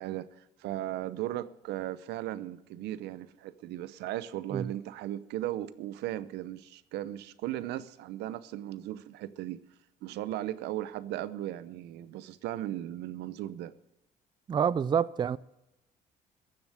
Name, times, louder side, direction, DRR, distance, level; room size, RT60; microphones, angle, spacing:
voice 1, 0.0-9.6 10.0-13.7, right 13 dB, 85° right, 0.8 m, -37 dB
voice 2, 14.5-15.4, right 7 dB, 25° right, 0.4 m, -27 dB
14.5 x 7.1 x 8.8 m
cardioid pair, 110°, 17 cm